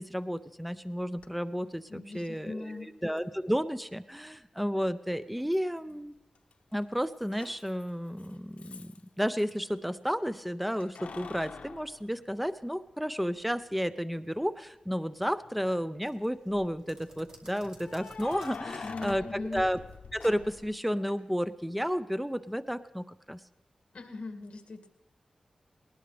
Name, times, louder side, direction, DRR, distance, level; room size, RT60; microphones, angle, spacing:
voice 1, 0.0-6.1 6.7-19.8 20.1-23.4, equal, ahead, 13 dB, 0.5 m, -32 dB
Keys jangling, 1.2-1.3 3.2-3.3 5.5-6.1 6.3-9.5 10.8-12.9 13.4-13.5 15.3-15.8 17.8-20.8, left 5 dB, 85° left, 0.8 m, -46 dB
voice 2, 1.9-2.9 18.6-19.6 23.9-24.9, left 3 dB, 60° left, 4 dB, 2.2 m, -40 dB
sound 1, 16.0-21.2, right 1 dB, 25° right, 2.6 m, -55 dB
20.0 x 19.5 x 3.4 m, 0.94 s
wide cardioid pair, 110°, 2 cm